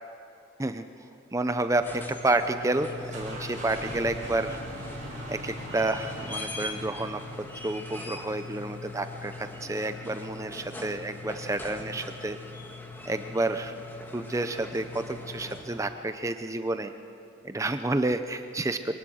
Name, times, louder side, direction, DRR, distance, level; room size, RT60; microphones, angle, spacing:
voice 1, 1.3-4.6 5.3-7.2 7.6-12.4 13.1-13.7 14.1-16.9 17.4-19.0, right 2 dB, 15° right, 9 dB, 0.5 m, -30 dB
sound 1, 1.6-16.0 17.7-17.8, left 2 dB, 10° left, 1.7 m, -41 dB
sound 2, 2.6-8.2, right 1 dB, 40° right, 7.2 m, -41 dB
23.5 x 19.0 x 6.3 m, 2.5 s
head